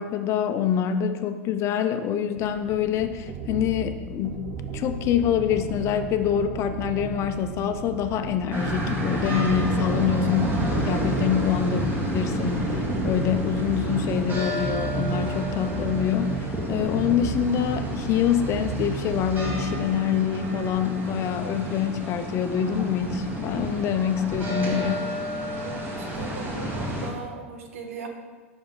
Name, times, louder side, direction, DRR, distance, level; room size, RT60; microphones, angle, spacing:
voice 1, 0.0-25.0, left 8 dB, 40° left, 8 dB, 0.5 m, -26 dB
sound 1, 2.4-19.8, right 5 dB, 40° right, 0.6 m, -34 dB
sound 2, 8.5-27.1, equal, 25° right, 1.6 m, -30 dB
voice 2, 25.6-28.1, right 4 dB, 75° right, 4 dB, 0.9 m, -38 dB
5.4 x 4.7 x 3.9 m, 1.4 s
hypercardioid pair, 100°, 7 cm